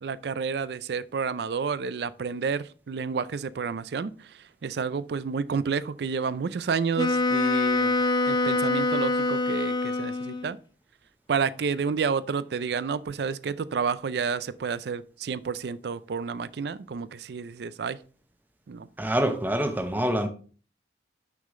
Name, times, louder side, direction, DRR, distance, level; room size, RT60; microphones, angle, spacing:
voice 1, 0.0-10.6 11.3-18.0 18.7-18.9, right 5 dB, 65° right, 0.4 m, -30 dB
Wind instrument woodwind instrument, 7.0-10.5, left 2 dB, 25° left, 0.6 m, -25 dB
voice 2, 19.0-20.3, equal, 10° right, 0.7 m, -25 dB
6.3 x 5.6 x 3.6 m
head